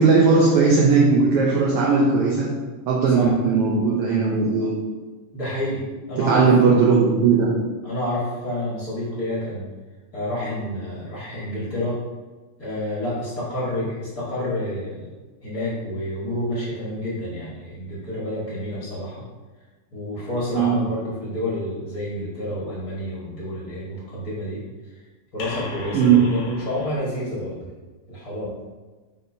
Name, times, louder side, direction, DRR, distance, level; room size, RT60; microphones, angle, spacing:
voice 1, 0.0-2.6 2.9-4.8 6.2-7.6 20.5-21.0 25.9-26.4, right 4 dB, 75° right, -2 dB, 1.3 m, -18 dB
voice 2, 5.3-6.5 7.8-9.7 10.1-11.9 12.6-15.1 15.4-19.2 19.9-24.6 25.3-27.6 28.1-28.5, left 1 dB, 40° left, -7 dB, 1.5 m, -29 dB
sound 1, 20.3-22.3 25.4-27.0, left 3 dB, 85° left, 2.3 m, -38 dB
9.3 x 4.2 x 2.7 m, 1.3 s
omnidirectional pair, 3.4 m